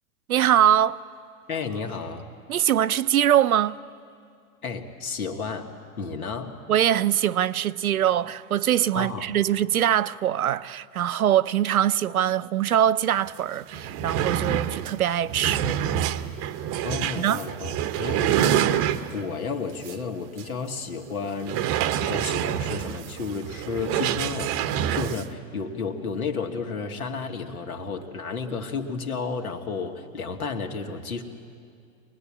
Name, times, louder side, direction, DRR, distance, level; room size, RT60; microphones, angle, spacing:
voice 1, 0.3-1.0 2.5-3.8 6.7-16.0 17.1-17.4, right 10 dB, 80° right, 0.7 m, -23 dB
voice 2, 1.5-2.3 4.6-6.6 8.9-9.3 16.8-21.6 22.0-31.2, left 5 dB, 80° left, 2.3 m, -32 dB
sound 1, 13.3-13.4 13.6-19.3 19.8-20.0 20.4-20.5 21.4-25.3, right 10 dB, 35° right, 0.8 m, -27 dB
24.5 x 19.5 x 8.6 m
hypercardioid pair, 105°, 43 cm